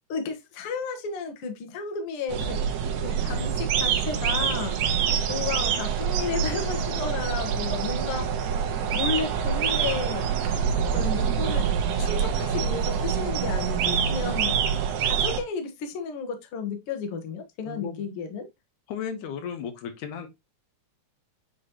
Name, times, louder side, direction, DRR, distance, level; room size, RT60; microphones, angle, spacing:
voice 1, 0.1-2.6 3.0-8.5 8.9-10.3 10.8-11.7 12.0-14.6 15.0-18.5, left 5 dB, 55° left, 1.9 m, -33 dB
sound 1, 2.3-15.4, right 7 dB, 75° right, 2.2 m, -26 dB
voice 2, 17.7-18.0 18.9-20.3, left 7 dB, 90° left, 2.6 m, -34 dB
8.2 x 4.2 x 2.9 m
omnidirectional pair, 3.5 m